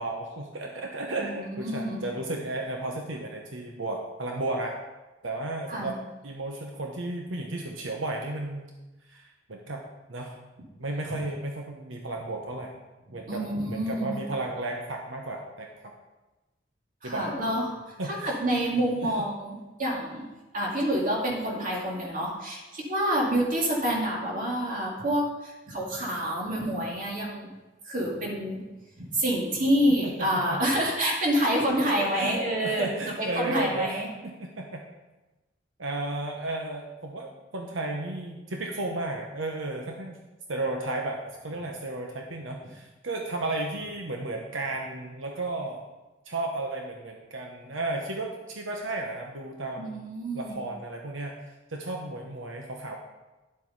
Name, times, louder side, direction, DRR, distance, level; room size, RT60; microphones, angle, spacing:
voice 1, 0.0-4.8 5.2-6.0 6.2-8.7 9.1-9.8 10.1-10.3 10.8-12.7 13.1-15.9 17.0-17.3 18.0-18.4 18.8-19.2 30.0-30.6 31.7-34.8 35.8-40.2 40.5-45.8 46.2-50.0 50.3-51.3 51.7-53.0, right 2 dB, 85° right, 1 dB, 1.0 m, -34 dB
voice 2, 1.2-2.0 5.7-5.9 13.3-14.2 17.0-17.6 18.1-20.2 20.5-27.5 27.8-28.6 29.0-32.9 33.4-34.1 49.8-50.6, equal, 45° right, -2 dB, 2.3 m, -27 dB
11.0 x 7.6 x 4.1 m, 1.1 s
head